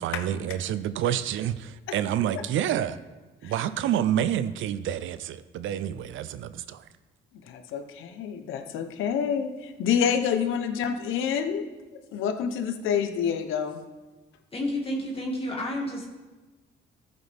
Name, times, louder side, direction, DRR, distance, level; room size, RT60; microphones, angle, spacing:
voice 1, 0.0-3.0 3.4-6.8, right 10 dB, 80° right, 0.6 m, -28 dB
voice 2, 7.5-11.6 11.9-13.8, left 7 dB, 90° left, 1.0 m, -28 dB
voice 3, 14.5-16.0, left 1 dB, 30° left, 2.1 m, -30 dB
14.0 x 8.0 x 3.5 m
cardioid pair, 90°, 20 cm